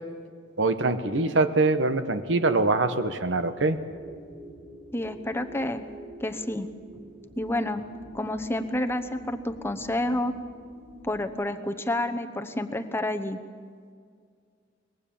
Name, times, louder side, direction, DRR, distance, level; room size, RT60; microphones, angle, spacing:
voice 1, 0.6-3.8, right 3 dB, 70° right, 10 dB, 1.2 m, -24 dB
sound 1, 3.5-11.3, right 1 dB, 30° right, 4.8 m, -46 dB
voice 2, 4.9-5.8 6.2-6.7 7.4-7.8 8.1-10.3 11.0-13.4, left 1 dB, 15° left, 7 dB, 0.9 m, -29 dB
23.0 x 20.5 x 7.1 m, 2.1 s
head